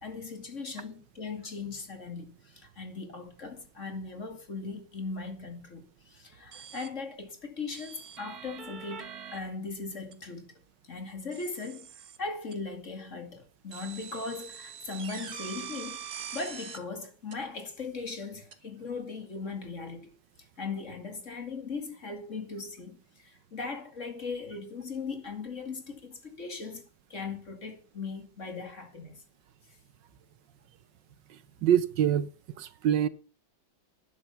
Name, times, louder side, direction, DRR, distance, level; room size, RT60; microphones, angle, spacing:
voice 1, 0.0-10.5 10.9-16.0 16.3-20.1 20.4-29.2, left 4 dB, 40° left, 2.6 m, -39 dB
sound 1, 6.5-6.9 7.7-9.4 10.1-10.2 11.3-12.2 12.5-12.6 13.7-16.8 17.3-17.4 18.5-18.6, right 7 dB, 55° right, 1.9 m, -43 dB
voice 2, 31.3-32.3 32.6-33.1, right 10 dB, 70° right, 1.4 m, -25 dB
12.0 x 10.5 x 5.8 m
omnidirectional pair, 2.1 m